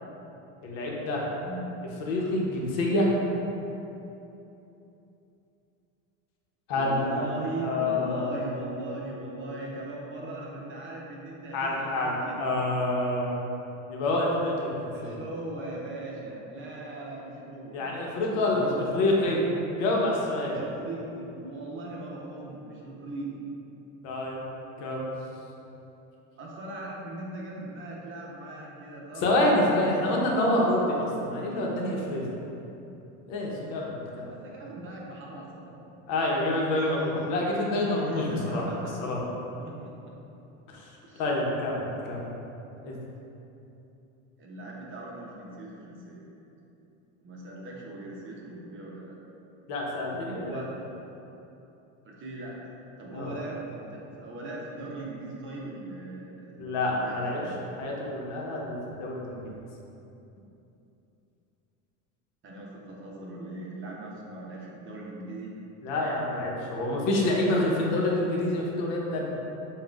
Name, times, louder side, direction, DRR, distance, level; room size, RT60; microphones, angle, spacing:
voice 1, 0.6-1.2 2.0-3.1 6.7-7.3 7.6-8.4 11.5-13.4 13.9-15.2 17.7-19.4 19.8-20.6 24.0-24.5 24.8-25.1 29.2-32.3 33.3-34.3 36.1-38.6 39.0-39.2 40.7-40.9 41.2-42.2 42.8-43.0 49.7-50.6 53.1-53.3 56.6-57.4 57.8-59.6 65.8-69.4, left 1 dB, 80° left, -2 dB, 0.9 m, -27 dB
voice 2, 6.8-12.5 14.9-19.2 20.4-23.4 26.4-30.2 34.2-35.8 36.8-37.3 38.0-39.0 39.6-40.1 41.0-41.2 44.4-46.2 47.2-49.2 50.1-50.7 52.0-52.7 53.0-56.6 56.9-57.6 62.4-65.5, right 2 dB, 35° right, -3 dB, 0.8 m, -39 dB
7.2 x 2.4 x 2.4 m, 2.9 s
supercardioid pair, 125°, 38 cm